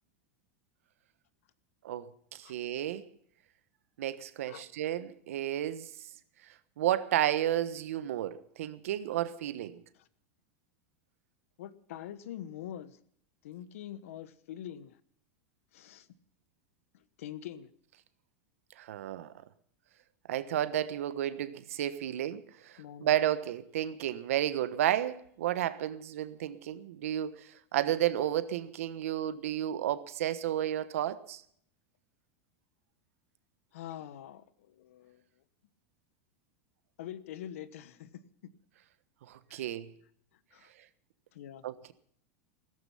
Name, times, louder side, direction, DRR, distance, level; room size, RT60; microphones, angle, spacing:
voice 1, 1.8-3.1 4.0-5.9 6.8-9.8 18.8-19.3 20.3-31.4 39.3-39.9 41.6-41.9, right 11 dB, 90° right, 1.2 m, -32 dB
voice 2, 11.6-13.0 13.4-15.0 15.7-16.1 16.9-17.7 22.8-23.1 33.7-35.2 37.0-38.5 39.5-39.7 40.5-40.7 41.3-41.6, left 11 dB, 85° left, 1.2 m, -45 dB
16.0 x 14.0 x 5.6 m
supercardioid pair, 140°, 7 cm